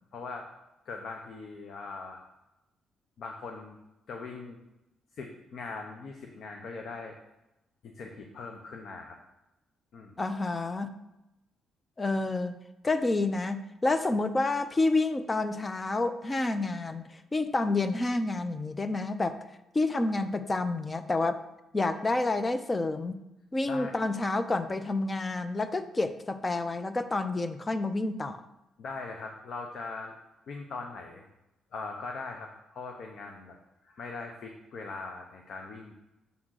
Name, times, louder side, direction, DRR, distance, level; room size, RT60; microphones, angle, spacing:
voice 1, 0.1-0.5 0.9-2.2 3.2-3.8 4.1-4.6 5.1-7.1 7.8-9.2 9.9-10.1 23.7-23.9 28.8-30.1 30.5-31.2 31.7-33.6 33.8-35.9, left 4 dB, 65° left, 3 dB, 0.8 m, -40 dB
voice 2, 10.2-10.9 12.0-12.6 12.8-19.4 19.7-21.4 21.7-23.2 23.5-28.4, left 2 dB, 25° left, 10 dB, 0.6 m, -29 dB
7.1 x 3.7 x 6.3 m, 0.94 s
cardioid pair, 90°, 0 cm